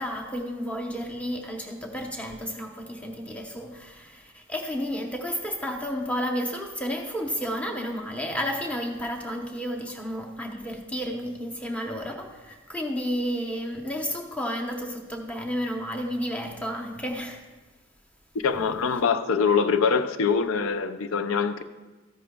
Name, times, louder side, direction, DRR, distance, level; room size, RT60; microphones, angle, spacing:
voice 1, 0.0-17.4, equal, 5° left, 2 dB, 0.9 m, -32 dB
voice 2, 18.4-21.6, left 5 dB, 90° left, 10 dB, 0.5 m, -24 dB
13.5 x 10.0 x 2.3 m, 1.2 s
head